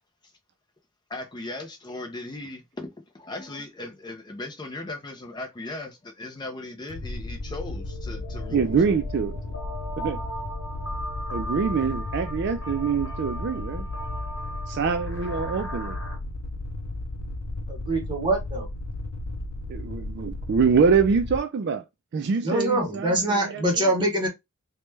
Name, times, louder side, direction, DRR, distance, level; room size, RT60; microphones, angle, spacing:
voice 1, 1.1-8.8, left 2 dB, 20° left, 0.4 m, -38 dB
sound 1, 6.5-6.6 6.9-16.2, equal, 60° left, 0.9 m, -38 dB
sound 2, 6.9-21.4, left 2 dB, 85° left, 0.5 m, -34 dB
voice 2, 8.5-9.4 10.0-10.2 11.3-13.9 14.7-16.0 19.7-21.8 22.1-23.9, right 5 dB, 55° right, 0.3 m, -25 dB
voice 3, 17.7-18.7 22.4-24.3, right 1 dB, 20° right, 1.1 m, -24 dB
3.1 x 2.2 x 3.2 m
head